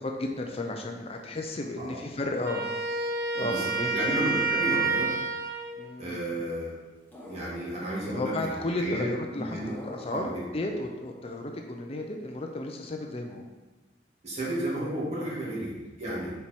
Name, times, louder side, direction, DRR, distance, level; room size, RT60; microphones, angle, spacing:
voice 1, 0.0-2.6 3.0-3.1 3.3-4.0 5.8-6.4 8.1-9.6 9.8-13.4 15.3-15.7, left 2 dB, 35° left, 2 dB, 0.6 m, -33 dB
Wind instrument woodwind instrument, 2.4-5.8, right 3 dB, 70° right, 1.2 m, -28 dB
voice 2, 3.4-5.1 6.0-6.7 7.3-9.1 9.3-9.8 10.1-10.4 14.2-16.3, right 1 dB, 35° right, -6 dB, 2.4 m, -33 dB
sound 1, 7.1-8.0 9.7-10.6, left 1 dB, 10° left, 1.2 m, -46 dB
7.1 x 4.5 x 4.5 m, 1.2 s
head